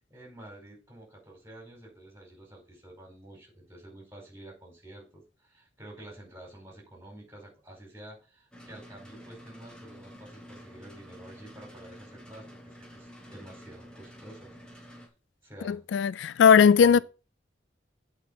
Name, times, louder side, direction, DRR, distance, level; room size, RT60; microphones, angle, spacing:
voice 1, 0.1-14.9 15.4-15.8 16.8-17.0, right 1 dB, 15° right, 4.7 m, -49 dB
sound 1, 8.5-15.1, equal, 5° left, 1.6 m, -49 dB
voice 2, 15.7-17.0, left 7 dB, 80° left, 0.3 m, -19 dB
8.3 x 4.5 x 5.8 m
head